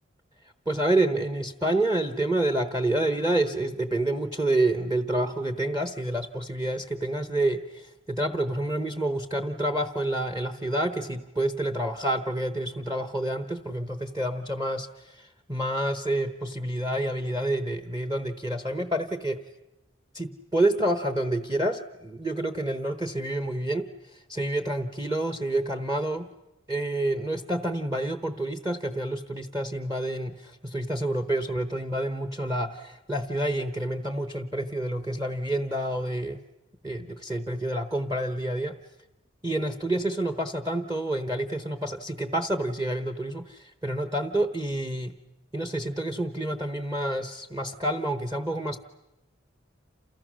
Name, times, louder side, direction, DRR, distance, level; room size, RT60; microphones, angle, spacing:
voice 1, 0.7-19.4 20.1-26.3 26.7-36.4 36.8-38.8 39.4-45.1 45.5-48.8, right 1 dB, 15° right, 8 dB, 0.9 m, -28 dB
28.5 x 28.5 x 6.3 m, 0.95 s
head